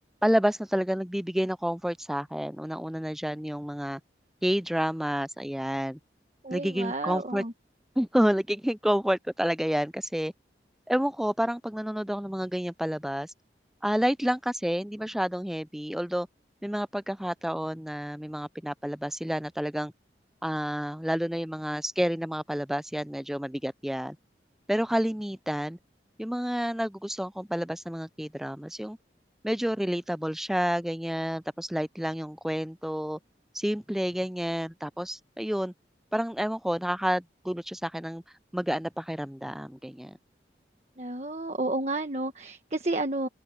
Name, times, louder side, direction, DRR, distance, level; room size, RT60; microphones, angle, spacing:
voice 1, 0.2-4.0 4.4-6.0 6.5-7.4 8.0-10.3 10.9-13.3 13.8-16.3 16.6-19.9 20.4-24.2 24.7-25.8 26.2-29.0 29.4-33.2 33.5-35.7 36.1-38.2 38.5-40.2, equal, ahead, 0.3 m, -29 dB
voice 2, 6.4-7.5 41.0-43.3, right 2 dB, 40° right, 1.3 m, -31 dB
open air
head